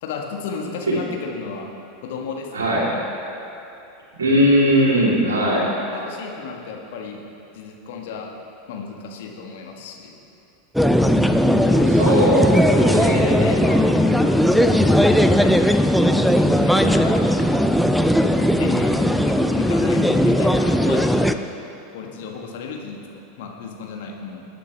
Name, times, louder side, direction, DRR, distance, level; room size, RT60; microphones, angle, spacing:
voice 1, 0.0-1.7 2.0-2.7 5.3-7.2 7.5-8.3 8.7-10.2 11.6-14.1 14.5-15.8 16.5-17.5 18.2-21.3 21.9-23.0 23.4-24.5, left 5 dB, 55° left, 1 dB, 1.6 m, -33 dB
voice 2, 2.5-2.9 4.2-5.7 11.9-13.2, equal, 75° right, -5 dB, 3.5 m, -18 dB
sound 1, 10.8-21.3, equal, ahead, 0.5 m, -17 dB
20.5 x 9.5 x 3.4 m, 2.8 s
figure-of-eight pair, 85°, 0 cm